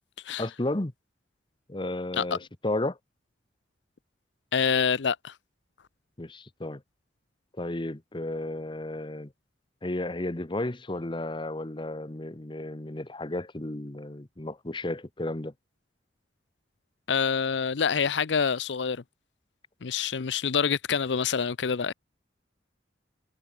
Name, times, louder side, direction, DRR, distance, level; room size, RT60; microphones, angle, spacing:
voice 1, 0.4-0.9 1.7-3.0 6.2-6.8 7.6-9.3 9.8-15.5, left 1 dB, 25° left, 1.1 m, -33 dB
voice 2, 4.5-5.3 17.1-19.0 19.8-21.9, left 6 dB, 75° left, 0.6 m, -26 dB
head